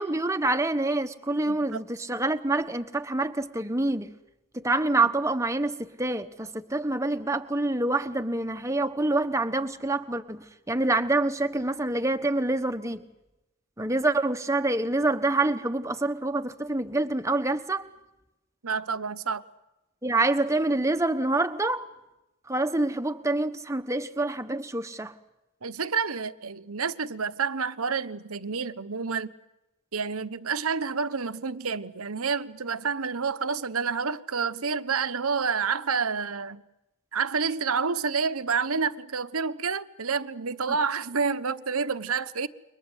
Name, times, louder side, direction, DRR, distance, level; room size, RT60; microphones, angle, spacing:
voice 1, 0.0-4.1 4.5-13.0 13.8-17.8 20.0-21.9 22.5-25.1, right 2 dB, 15° right, 1.2 m, -26 dB
voice 2, 1.5-1.8 5.0-5.1 18.6-19.4 25.6-29.3 29.9-36.6 37.1-42.5, right 5 dB, 80° right, 1.1 m, -29 dB
29.0 x 23.5 x 8.1 m
head